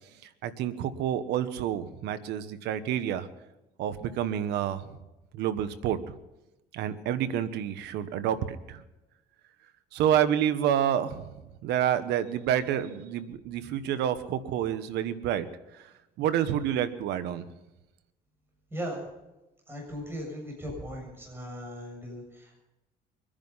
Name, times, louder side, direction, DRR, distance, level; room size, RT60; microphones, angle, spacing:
voice 1, 0.4-3.3 3.8-4.9 5.3-6.0 6.7-8.8 9.9-11.3 11.6-15.5 16.2-17.4, right 10 dB, 85° right, 12 dB, 1.2 m, -28 dB
voice 2, 19.7-22.5, equal, 15° right, -2 dB, 7.3 m, -38 dB
24.0 x 10.5 x 5.6 m, 0.98 s
cardioid pair, 110°, 17 cm